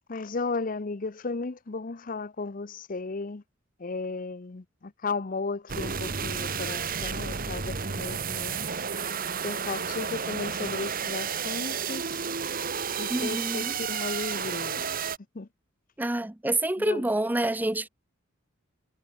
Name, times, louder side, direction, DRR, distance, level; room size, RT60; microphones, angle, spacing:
voice 1, 0.1-3.4 3.8-8.6 9.4-12.2 13.0-14.9 15.3-15.5 16.8-17.1, left 3 dB, 40° left, 0.7 m, -35 dB
sound 1, 5.7-15.2, right 6 dB, 45° right, 1.5 m, -32 dB
voice 2, 13.1-13.7 16.0-17.9, right 1 dB, 10° right, 0.4 m, -27 dB
head